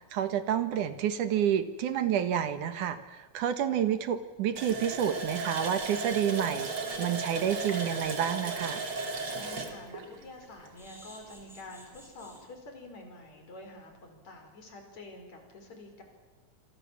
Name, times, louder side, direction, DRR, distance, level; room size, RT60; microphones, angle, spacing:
voice 1, 0.0-8.8, right 9 dB, 85° right, 11 dB, 3.0 m, -29 dB
Water tap faucet, 4.6-11.1 11.4-11.5 11.9-12.1, right 3 dB, 45° right, 3.4 m, -36 dB
sound 1, 9.0-9.1 9.4-9.6 10.8-12.4 13.0-13.2 13.5-13.6 13.9-14.0, equal, ahead, 5.8 m, -54 dB
voice 2, 9.3-16.0, left 2 dB, 60° left, 4 dB, 6.1 m, -48 dB
27.0 x 26.0 x 7.4 m, 1.2 s
omnidirectional pair, 3.5 m